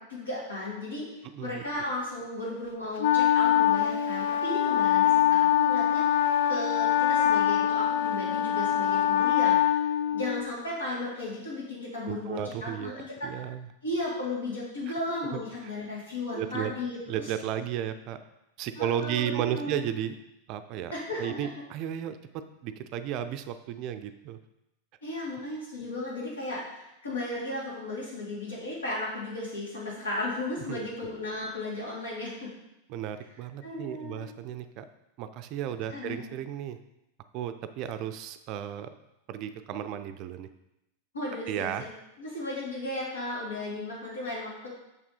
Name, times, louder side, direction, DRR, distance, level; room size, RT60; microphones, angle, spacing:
voice 1, 0.1-1.1 1.4-9.9 10.1-13.3 13.8-17.3 18.8-19.9 20.9-21.5 25.0-32.5 33.6-34.3 35.9-36.3 41.1-41.7 42.2-44.7, left 2 dB, 70° left, -5 dB, 3.0 m, -35 dB
voice 2, 1.2-1.7 12.1-13.7 15.3-15.7 16.3-16.7 17.1-18.2 18.6-20.1 20.5-20.9 21.2-24.4 30.7-30.9 32.9-34.9 35.2-36.8 37.3-38.9 39.3-40.5 41.5-41.8, right 10 dB, 40° right, 10 dB, 0.4 m, -34 dB
Wind instrument woodwind instrument, 3.0-10.5, left 11 dB, 55° left, 0.3 m, -24 dB
6.6 x 5.9 x 4.2 m, 0.88 s
figure-of-eight pair, 90°, 0 cm